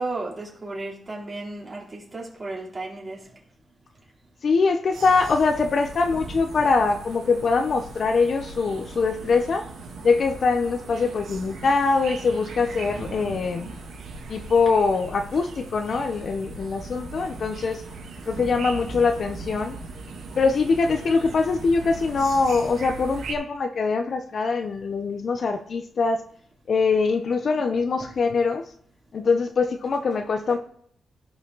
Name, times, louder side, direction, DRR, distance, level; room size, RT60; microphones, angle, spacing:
voice 1, 0.0-3.2, right 2 dB, 25° right, 3.4 m, -34 dB
voice 2, 4.4-9.7 10.0-13.7 14.3-17.8 18.3-19.8 20.3-26.2 26.7-28.6 29.1-30.6, left 4 dB, 50° left, 0.8 m, -23 dB
sound 1, 4.9-23.3, right 3 dB, 85° right, 2.6 m, -39 dB
16.0 x 5.7 x 4.0 m
cardioid pair, 105°, 0 cm